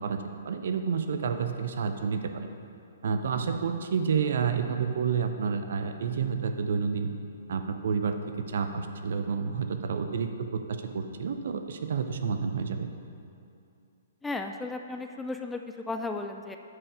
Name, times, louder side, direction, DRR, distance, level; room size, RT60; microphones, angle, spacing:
voice 1, 0.0-2.5 3.0-7.1 7.5-10.6 10.9-12.9, right 6 dB, 60° right, 7 dB, 0.6 m, -29 dB
voice 2, 14.2-15.6 15.9-16.6, left 3 dB, 10° left, 5 dB, 0.4 m, -34 dB
8.5 x 4.8 x 4.9 m, 2.5 s
figure-of-eight pair, 120°, 0 cm